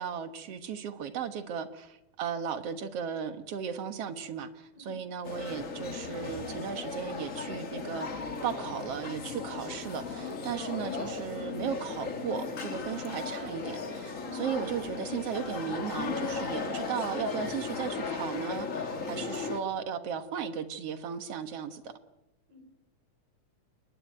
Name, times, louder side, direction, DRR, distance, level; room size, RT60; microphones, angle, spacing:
voice 1, 0.0-21.9, right 7 dB, 55° right, 8 dB, 2.1 m, -36 dB
voice 2, 4.7-5.0 12.9-13.5 14.1-14.6 22.5-22.6, left 1 dB, 90° right, 4 dB, 6.6 m, -51 dB
sound 1, 5.2-19.6, left 4 dB, 40° left, 1.3 m, -36 dB
30.0 x 11.0 x 9.2 m, 0.93 s
omnidirectional pair, 3.6 m